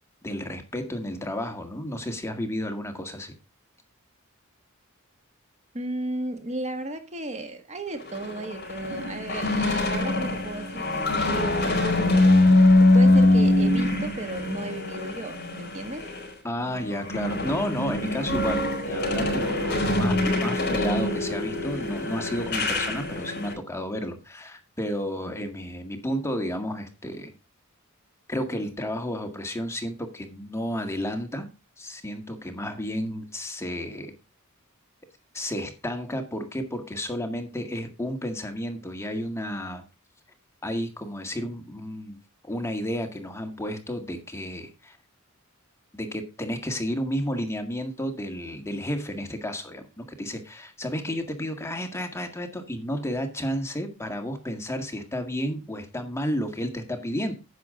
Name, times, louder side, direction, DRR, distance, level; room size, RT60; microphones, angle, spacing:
voice 1, 0.2-3.3 16.4-27.3 28.3-31.5 31.8-34.1 35.3-39.8 40.6-42.2 42.4-45.0 45.9-57.3, equal, 15° left, 5 dB, 1.8 m, -32 dB
voice 2, 5.7-12.7 12.9-16.1, right 2 dB, 35° right, 7 dB, 1.6 m, -35 dB
sound 1, 7.9-16.3 16.7-23.5, left 2 dB, 50° left, 4.9 m, -23 dB
10.5 x 8.2 x 3.7 m, 0.28 s
head